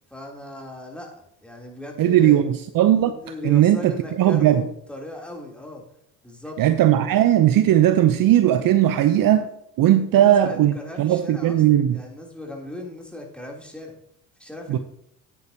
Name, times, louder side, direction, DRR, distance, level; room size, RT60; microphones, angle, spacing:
voice 1, 0.1-2.4 3.0-5.8 6.2-6.6 10.1-11.6 11.9-13.9 14.4-14.8, left 1 dB, ahead, 0 dB, 3.3 m, -38 dB
voice 2, 2.0-3.1 3.4-4.6 6.6-9.5 9.8-10.7 11.0-12.0 14.7-14.8, right 12 dB, 50° right, 10 dB, 0.8 m, -18 dB
9.5 x 9.3 x 2.9 m, 0.76 s
hypercardioid pair, 65°, 45 cm